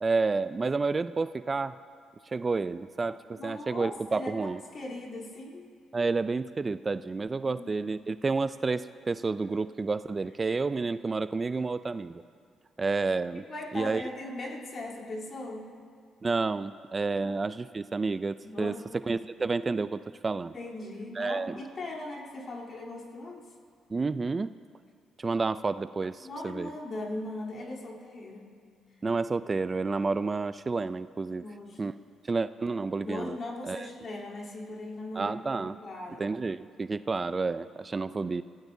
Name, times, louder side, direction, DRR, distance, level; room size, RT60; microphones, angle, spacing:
voice 1, 0.0-1.8 2.3-4.6 5.9-12.2 12.8-13.4 13.7-14.0 16.2-18.7 19.1-20.6 21.2-21.6 23.9-24.5 25.2-26.7 29.0-31.4 31.8-31.9 32.3-33.4 33.6-33.9 35.2-35.8 36.2-38.4, right 4 dB, 30° right, 13 dB, 0.4 m, -30 dB
voice 2, 3.4-5.7 7.5-7.8 10.4-10.6 13.4-15.7 17.2-17.3 18.4-18.8 20.5-23.5 26.2-28.5 31.4-31.8 33.0-36.3, left 2 dB, 50° left, -3 dB, 3.3 m, -39 dB
28.5 x 16.0 x 2.7 m, 2.2 s
cardioid pair, 90°, 0 cm